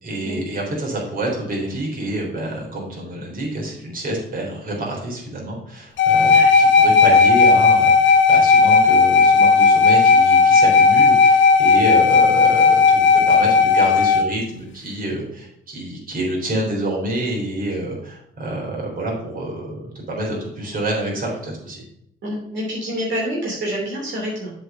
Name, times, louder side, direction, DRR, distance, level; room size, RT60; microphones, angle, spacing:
voice 1, 0.0-21.8, right 1 dB, 45° right, -3 dB, 3.6 m, -27 dB
sound 1, 6.0-14.2, left 4 dB, 70° left, 1.3 m, -14 dB
voice 2, 22.2-24.5, equal, 65° right, -4 dB, 3.1 m, -27 dB
7.6 x 4.9 x 5.5 m, 0.75 s
cardioid pair, 90°, 20 cm